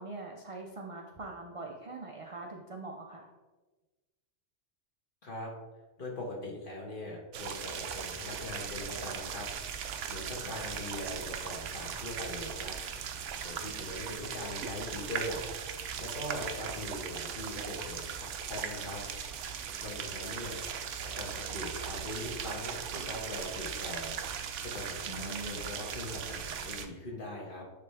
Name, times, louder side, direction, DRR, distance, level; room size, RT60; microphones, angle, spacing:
voice 1, 0.0-3.3 10.5-10.6 25.1-25.7, right 2 dB, 45° right, 1 dB, 0.4 m, -43 dB
voice 2, 6.0-9.5 9.8-12.7 13.4-15.4 15.7-19.0 19.8-20.6 21.0-24.2 24.6-27.6, left 1 dB, 45° left, -2 dB, 1.5 m, -41 dB
sound 1, 7.3-26.9, right 7 dB, 85° right, 0.9 m, -38 dB
9.9 x 3.4 x 3.4 m, 1.2 s
omnidirectional pair, 1.2 m